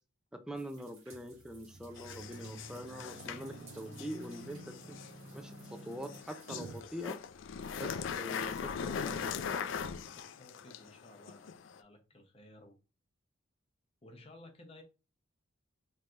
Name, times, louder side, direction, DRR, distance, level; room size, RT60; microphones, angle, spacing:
voice 1, 0.3-5.0 5.3-7.2 7.7-9.8, equal, 5° right, 0.4 m, -44 dB
sound 1, 0.5-6.8, right 4 dB, 80° right, 1.7 m, -61 dB
sound 2, 1.1-6.9, right 2 dB, 50° right, 0.6 m, -50 dB
sound 3, 2.0-11.8, left 6 dB, 65° left, 0.3 m, -41 dB
voice 2, 10.1-12.8 14.0-14.8, left 1 dB, 30° left, 0.8 m, -56 dB
4.5 x 3.2 x 2.5 m
head